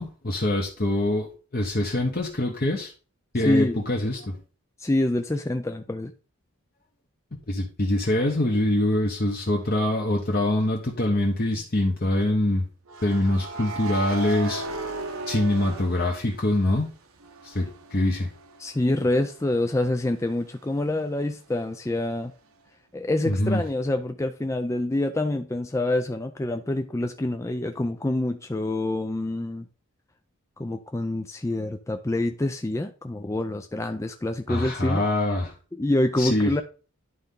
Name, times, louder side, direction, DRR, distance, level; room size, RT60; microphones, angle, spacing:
voice 1, 0.0-2.9 3.3-4.4 7.5-12.7 13.0-14.6 15.3-16.9 17.4-18.3 23.2-23.6 34.5-35.5 36.2-36.6, left 1 dB, 40° left, 0.9 m, -24 dB
voice 2, 3.4-3.8 4.8-6.1 18.6-22.3 22.9-29.7 30.6-35.1 35.7-36.6, left 1 dB, 15° left, 0.4 m, -26 dB
sound 1, 9.6-9.8 12.9-16.8 17.2-20.7, right 3 dB, 75° right, 1.0 m, -37 dB
11.0 x 4.0 x 3.7 m
head